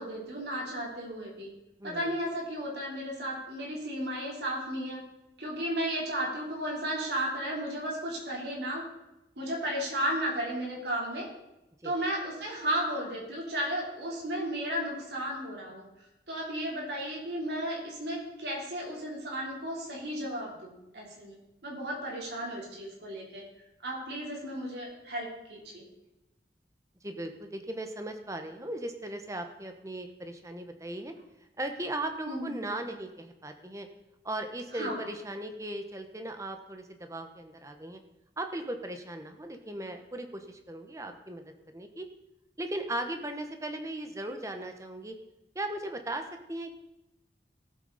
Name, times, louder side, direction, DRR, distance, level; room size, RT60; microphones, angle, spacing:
voice 1, 0.0-1.5 1.8-5.0 5.4-8.8 9.4-11.3 11.8-15.8 16.3-23.4 23.8-25.9 32.3-32.6 34.7-35.0, equal, 75° right, -2 dB, 3.8 m, -34 dB
voice 2, 1.8-2.1 11.8-11.9 27.0-31.1 31.6-33.9 34.2-38.0 38.4-41.4 41.7-42.1 42.6-45.1 45.5-46.7, right 1 dB, 20° right, 6 dB, 1.1 m, -37 dB
18.0 x 8.2 x 4.2 m, 0.92 s
head